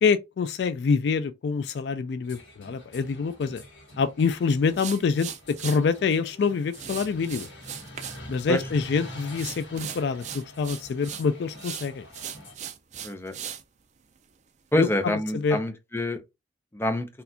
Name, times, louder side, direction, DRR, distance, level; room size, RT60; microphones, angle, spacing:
voice 1, 0.0-3.6 4.0-5.3 5.6-7.5 8.3-12.0 14.8-14.9 15.3-15.6, left 5 dB, 65° left, 0.3 m, -26 dB
sound 1, 2.2-12.5, left 1 dB, 85° left, 1.6 m, -45 dB
sound 2, 4.7-5.8 6.7-8.2 8.5-8.9 9.3-11.3 11.6-13.6, right 9 dB, 40° right, 0.4 m, -38 dB
voice 2, 13.0-13.3 14.7-16.2 16.7-17.1, left 1 dB, 15° left, 0.5 m, -26 dB
4.1 x 2.4 x 2.7 m
head